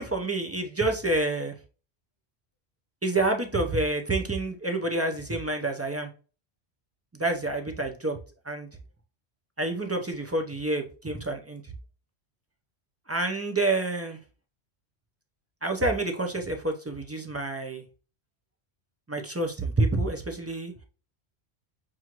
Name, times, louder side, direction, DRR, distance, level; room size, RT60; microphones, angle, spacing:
voice 1, 0.0-1.5 3.0-6.1 7.2-8.2 8.5-8.7 9.6-11.6 13.1-14.2 15.6-17.8 19.1-20.7, right 2 dB, 25° right, 3 dB, 0.3 m, -28 dB
6.0 x 2.4 x 2.9 m, 0.36 s
omnidirectional pair, 1.1 m